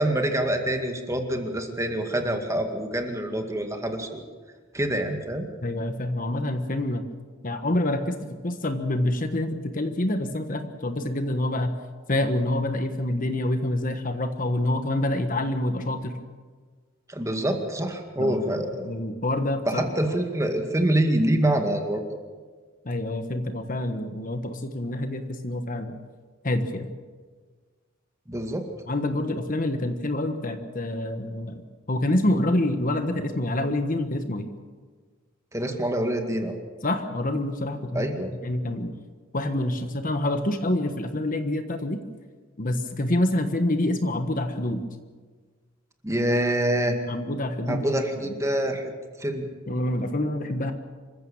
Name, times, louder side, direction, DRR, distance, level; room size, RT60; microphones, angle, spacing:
voice 1, 0.0-4.2 4.7-5.5 17.1-18.9 19.7-22.0 28.3-28.7 35.5-36.6 37.9-38.3 46.0-47.0 47.7-48.9 49.2-49.5, right 1 dB, 15° right, 4 dB, 2.1 m, -26 dB
voice 2, 5.6-7.0 7.4-11.7 12.1-16.2 18.2-19.9 22.8-26.0 26.4-26.9 28.9-34.5 36.8-38.9 39.3-42.0 42.6-44.8 47.1-48.3 49.7-50.7, left 1 dB, 45° left, 8 dB, 1.4 m, -27 dB
26.5 x 15.0 x 7.2 m, 1.5 s
head